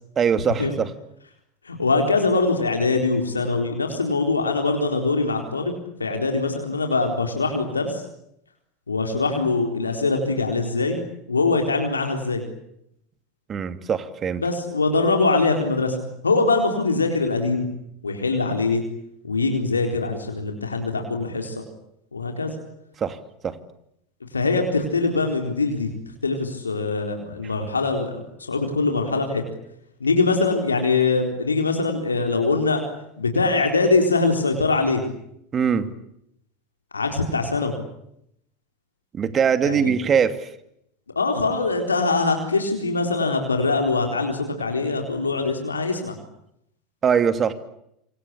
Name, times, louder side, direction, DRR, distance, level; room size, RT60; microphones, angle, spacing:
voice 1, 0.2-0.9 13.5-14.4 23.0-23.2 23.4-23.5 35.5-35.9 39.1-40.5 47.0-47.5, right 7 dB, 30° right, 11 dB, 2.7 m, -22 dB
voice 2, 1.7-8.0 8.9-11.0 11.3-12.4 14.4-16.0 16.2-17.7 18.0-18.8 19.2-21.5 22.1-22.5 24.3-25.9 26.2-28.2 28.5-29.4 30.0-32.8 33.2-35.0 36.9-37.8 39.6-39.9 41.2-46.2, left 3 dB, 85° left, 4 dB, 4.1 m, -22 dB
27.0 x 26.0 x 8.4 m, 0.76 s
figure-of-eight pair, 80°, 0 cm